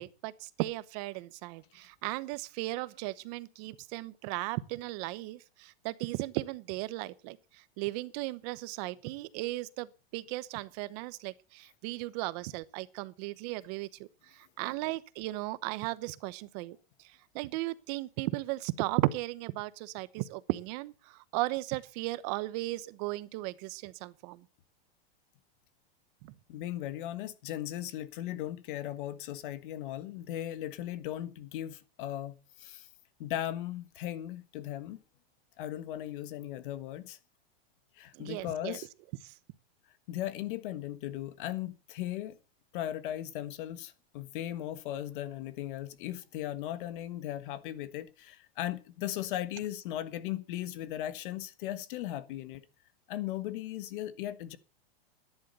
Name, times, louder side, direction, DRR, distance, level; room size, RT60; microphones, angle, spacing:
voice 1, 0.0-24.5 26.2-26.3 38.1-38.8 39.2-39.4, right 19 dB, 40° right, 0.9 m, -36 dB
voice 2, 26.5-32.9 33.2-35.0 35.6-37.2 37.9-38.9 40.1-42.4 42.7-52.6 53.1-54.6, left 13 dB, 55° left, 1.5 m, -37 dB
13.0 x 10.5 x 6.8 m
supercardioid pair, 155°, 30 cm